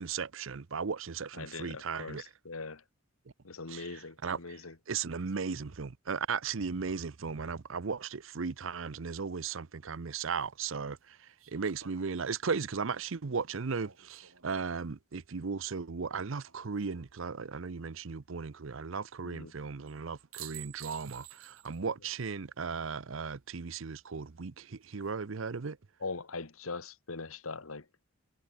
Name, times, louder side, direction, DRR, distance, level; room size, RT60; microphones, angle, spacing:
voice 1, 0.0-2.2 3.7-4.6 4.9-25.8, right 5 dB, 70° right, 0.7 m, -36 dB
voice 2, 1.3-2.8 3.4-4.8 19.2-19.5 26.0-27.9, left 3 dB, 90° left, 1.6 m, -41 dB
sound 1, 9.9-10.0 11.4-14.6 16.4-17.1 19.9-20.0 20.3-21.9 22.2-22.3 24.6-25.1, right 13 dB, 90° right, 7.2 m, -52 dB
head